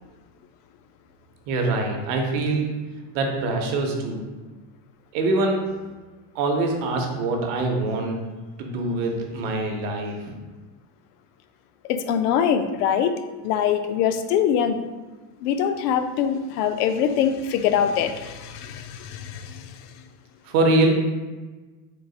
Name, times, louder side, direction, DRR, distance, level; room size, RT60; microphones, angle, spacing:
voice 1, 1.5-2.7 3.1-4.2 5.1-5.6 6.3-8.2 8.6-10.3 20.4-21.0, right 2 dB, 55° right, 2 dB, 0.7 m, -24 dB
voice 2, 11.9-13.2 13.4-14.8 15.4-19.8, left 8 dB, 80° left, 8 dB, 0.5 m, -23 dB
3.8 x 2.4 x 3.7 m, 1.3 s
supercardioid pair, 165°, 47 cm